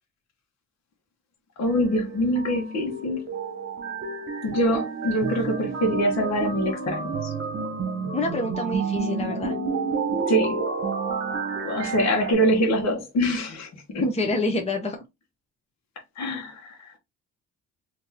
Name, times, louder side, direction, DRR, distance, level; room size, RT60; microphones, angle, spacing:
voice 1, 1.6-3.2 4.4-7.3 10.3-10.5 11.6-14.0 16.2-16.5, equal, 60° left, 1.2 m, -24 dB
sound 1, 1.7-12.3, right 4 dB, 45° right, 1.2 m, -30 dB
voice 2, 8.1-9.5 14.0-15.0, left 2 dB, 20° left, 0.8 m, -27 dB
3.6 x 2.9 x 2.8 m
cardioid pair, 90°, 30 cm